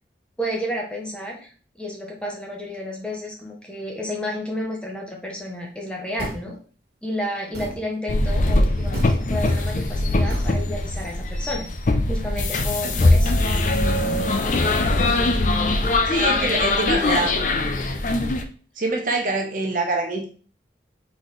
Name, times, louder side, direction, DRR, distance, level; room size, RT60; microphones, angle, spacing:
voice 1, 0.4-6.6 7.0-13.3, equal, 5° left, -1 dB, 0.8 m, -31 dB
sound 1, 6.2-6.5 7.5-7.8 8.9-9.2 10.3-10.6, right 1 dB, 60° right, 1.5 m, -32 dB
sound 2, 8.1-18.4, left 2 dB, 45° left, 0.5 m, -21 dB
voice 2, 16.1-17.5 18.8-20.3, right 2 dB, 45° right, 2 dB, 0.9 m, -25 dB
4.0 x 4.0 x 3.1 m, 0.40 s
head